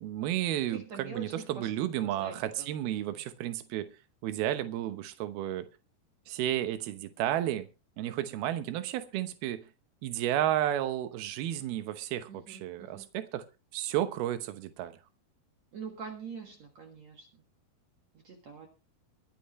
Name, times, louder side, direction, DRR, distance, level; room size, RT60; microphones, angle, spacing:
voice 1, 0.0-3.9 4.2-5.7 6.3-7.7 8.0-9.6 10.0-13.4 13.7-14.9, right 12 dB, 75° right, 2.9 m, -32 dB
voice 2, 0.7-3.2 8.0-8.3 12.3-13.1 15.7-17.4 18.2-18.7, right 6 dB, 55° right, 2.5 m, -45 dB
23.5 x 9.2 x 3.1 m
omnidirectional pair, 4.5 m